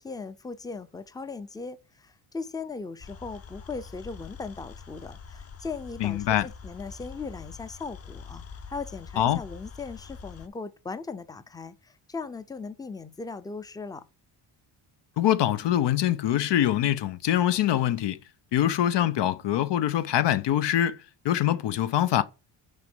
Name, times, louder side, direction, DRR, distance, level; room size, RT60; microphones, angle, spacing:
voice 1, 0.0-14.0, left 4 dB, 10° left, 0.5 m, -38 dB
sound 1, 3.0-10.5, left 5 dB, 35° left, 0.8 m, -44 dB
voice 2, 6.0-6.5 9.2-9.4 15.2-18.2 18.5-21.0 21.2-22.2, left 12 dB, 70° left, 0.8 m, -24 dB
6.5 x 5.1 x 7.0 m
cardioid pair, 130°, 44 cm